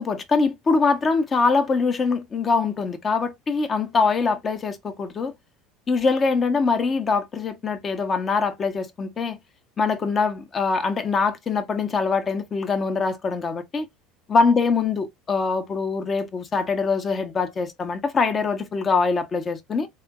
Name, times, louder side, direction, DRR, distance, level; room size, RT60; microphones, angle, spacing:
voice 1, 0.0-5.3 5.9-9.4 9.8-13.9 14.3-19.9, left 4 dB, 35° left, 1.0 m, -23 dB
3.5 x 3.4 x 2.4 m
hypercardioid pair, 80°, 0 cm